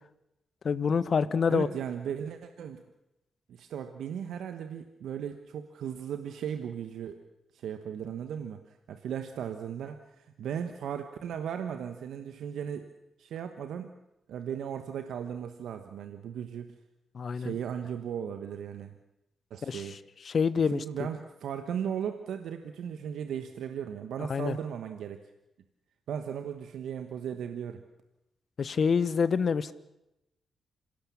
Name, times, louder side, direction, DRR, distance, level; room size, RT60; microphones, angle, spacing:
voice 1, 0.6-1.7 17.1-17.5 19.6-20.0 20.2-20.8 24.2-24.6 28.6-29.7, left 6 dB, 55° left, 16 dB, 1.0 m, -27 dB
voice 2, 1.5-2.8 3.5-7.2 7.5-12.9 13.2-13.9 14.3-16.8 17.3-18.9 19.5-20.0 20.6-25.2 26.1-27.8, right 8 dB, 70° right, 8 dB, 1.2 m, -36 dB
26.0 x 17.0 x 7.1 m, 0.91 s
hypercardioid pair, 40°, 0 cm